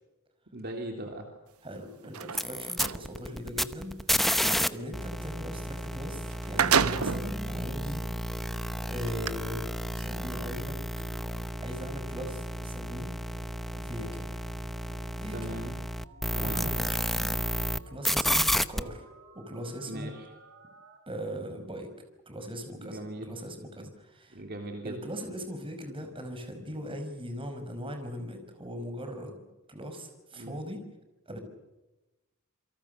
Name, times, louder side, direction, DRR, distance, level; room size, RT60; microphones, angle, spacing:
voice 1, 0.5-1.3 4.4-4.6 15.3-15.8 16.3-16.7 19.9-20.3 22.8-23.3 23.8-23.9 24.3-25.0 30.3-30.6, right 1 dB, 45° right, 3 dB, 3.2 m, -39 dB
voice 2, 1.6-3.9 4.7-8.0 8.9-9.6 9.9-10.8 11.6-13.1 13.8-14.4 14.8-15.5 16.3-17.4 17.9-19.1 19.3-20.1 21.1-21.9 22.3-23.0 23.3-24.4 24.8-29.4 29.7-30.8 31.3-31.4, equal, 25° right, 6 dB, 5.2 m, -39 dB
sound 1, 2.0-3.0 5.8-5.9 6.2-7.3 8.0-8.1 9.1-9.3, right 7 dB, 80° right, 1.0 m, -27 dB
sound 2, 2.2-4.7 4.9-17.8 18.0-18.8, equal, ahead, 0.8 m, -31 dB
sound 3, 6.5-21.0, right 2 dB, 65° right, 4.9 m, -54 dB
28.5 x 23.5 x 6.6 m, 1.0 s
head